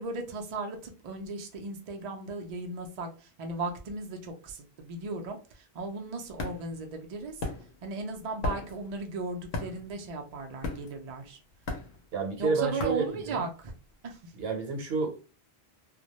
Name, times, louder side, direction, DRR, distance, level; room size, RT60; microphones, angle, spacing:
voice 1, 0.0-7.4 7.8-11.4 12.4-13.7 14.0-14.3, right 3 dB, 55° right, 3 dB, 0.4 m, -36 dB
sound 1, 5.8-13.9, left 2 dB, 90° left, 0.9 m, -38 dB
voice 2, 12.1-13.0 13.3-13.4 14.3-15.3, right 4 dB, 70° right, 2 dB, 0.9 m, -30 dB
2.2 x 2.0 x 2.8 m, 0.34 s
omnidirectional pair, 1.1 m